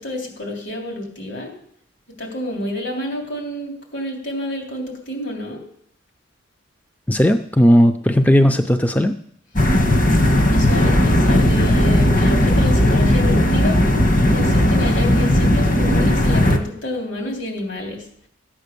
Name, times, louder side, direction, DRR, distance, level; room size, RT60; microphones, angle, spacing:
voice 1, 0.0-1.5 2.2-5.6 10.4-13.8 14.3-18.0, left 1 dB, 65° left, 1 dB, 3.4 m, -29 dB
voice 2, 7.1-9.1, equal, 10° left, 8 dB, 0.4 m, -15 dB
sound 1, 9.6-16.6, left 1 dB, 40° left, 1.3 m, -16 dB
14.5 x 8.7 x 6.8 m, 0.69 s
head